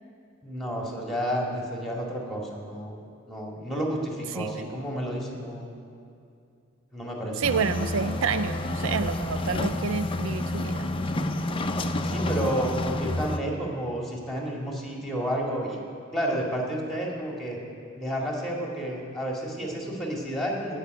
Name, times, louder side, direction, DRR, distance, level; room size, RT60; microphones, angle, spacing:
voice 1, 0.4-3.0 3.3-5.8 6.9-7.4 12.0-15.8 16.1-17.6 18.0-20.8, equal, ahead, -2 dB, 2.1 m, -31 dB
sound 1, 7.4-13.4, left 1 dB, 25° left, 0.5 m, -29 dB
voice 2, 7.4-11.2, right 5 dB, 70° right, 12 dB, 0.4 m, -29 dB
16.0 x 5.7 x 9.3 m, 2.5 s
head